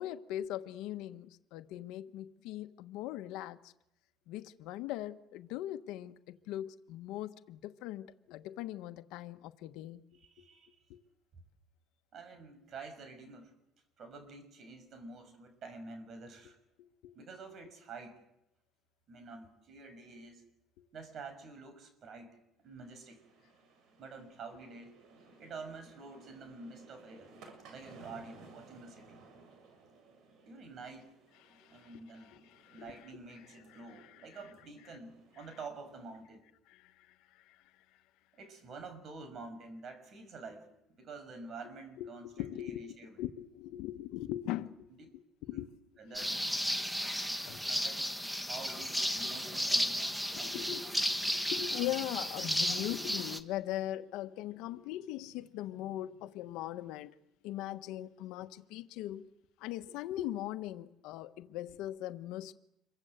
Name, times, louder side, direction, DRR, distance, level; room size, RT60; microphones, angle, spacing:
voice 1, 0.0-3.7 4.3-10.0 10.9-11.0 17.0-17.1 31.4-33.0 33.7-34.3 36.7-37.6 42.0-44.9 45.4-45.7 46.1-46.2 46.8-46.9 47.5-47.6 50.3-57.2 57.4-59.3 59.6-62.5, left 13 dB, 80° left, 1.2 m, -40 dB
voice 2, 10.1-10.7 12.1-13.5 14.0-16.6 17.1-18.2 19.1-20.4 20.9-22.4 22.6-23.2 24.0-24.9 25.4-27.3 27.6-29.2 30.5-31.1 31.7-32.4 32.7-36.4 38.3-40.7 40.9-43.2 45.0-45.1 45.5-45.7 46.0-46.4 47.7-50.7, right 4 dB, 45° right, 6.3 m, -48 dB
sound 1, 22.7-36.2, right 3 dB, 70° right, 7.1 m, -59 dB
sound 2, 46.1-53.4, equal, ahead, 1.6 m, -34 dB
27.5 x 23.5 x 8.1 m
cardioid pair, 130°, 0 cm